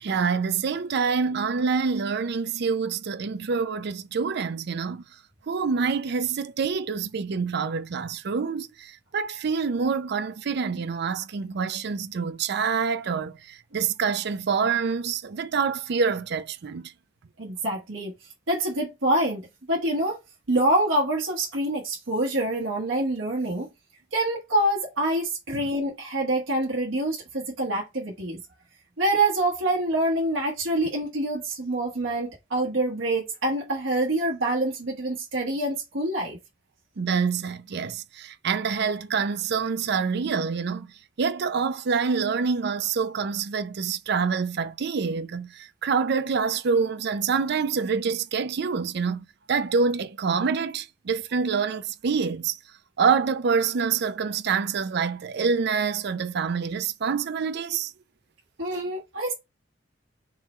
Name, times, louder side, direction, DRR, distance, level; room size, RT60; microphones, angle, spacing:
voice 1, 0.0-5.0 5.5-16.9 37.0-40.9 41.2-52.6 53.0-57.9, right 5 dB, 60° right, 0.5 m, -26 dB
voice 2, 17.4-18.1 18.5-20.2 20.5-23.7 24.1-28.4 29.0-36.4 58.6-59.3, right 1 dB, 85° right, 1.3 m, -26 dB
3.8 x 3.0 x 4.3 m
head